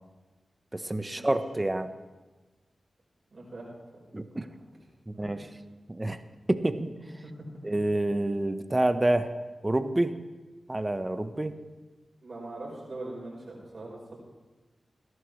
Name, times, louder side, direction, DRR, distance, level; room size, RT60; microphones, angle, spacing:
voice 1, 0.7-1.9 4.1-4.5 5.1-5.5 5.9-6.2 6.5-6.9 7.6-10.1 10.7-11.6, right 1 dB, 25° right, 10 dB, 0.9 m, -28 dB
voice 2, 3.3-3.7 4.3-4.5 5.1-5.4 12.2-14.1, right 2 dB, 60° right, -4 dB, 4.6 m, -42 dB
21.0 x 11.0 x 3.2 m, 1.2 s
cardioid pair, 45°, 0 cm